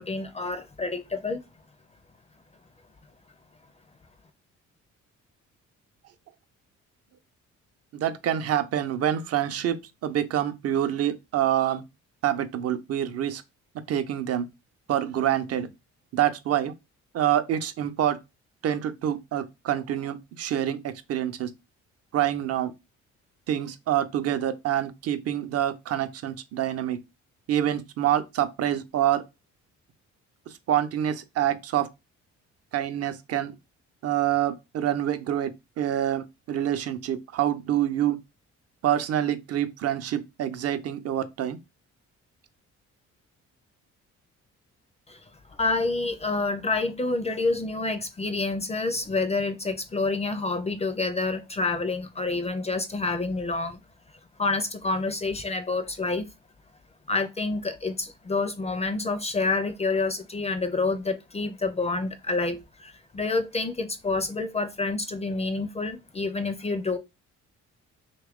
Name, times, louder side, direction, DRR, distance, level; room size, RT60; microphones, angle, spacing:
voice 1, 0.0-1.4 45.1-45.2 45.5-53.8 54.4-56.3 57.1-67.0, left 3 dB, 20° left, 0.4 m, -28 dB
voice 2, 7.9-11.8 12.2-13.4 13.9-14.4 14.9-15.7 16.1-16.7 17.1-18.2 18.6-21.5 22.1-22.7 23.5-27.0 27.5-29.2 30.7-31.9 32.7-33.5 34.0-38.2 38.8-41.6, right 11 dB, 55° right, 0.5 m, -26 dB
3.0 x 2.4 x 3.5 m
cardioid pair, 90°, 30 cm